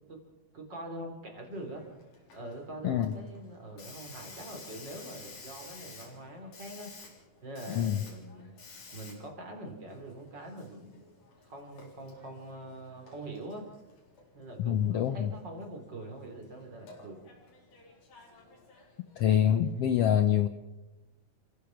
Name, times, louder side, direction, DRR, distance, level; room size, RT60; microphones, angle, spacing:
voice 1, 0.5-1.8 2.3-8.5 8.9-11.0 11.4-13.7 14.3-17.2, right 1 dB, 30° right, 3 dB, 3.9 m, -44 dB
Hiss, 1.5-19.9, left 3 dB, 65° left, 5.4 m, -53 dB
voice 2, 7.7-8.0 14.6-15.3 19.2-20.5, left 10 dB, 85° left, 9 dB, 1.3 m, -25 dB
29.5 x 15.5 x 5.9 m, 1.0 s
omnidirectional pair, 3.9 m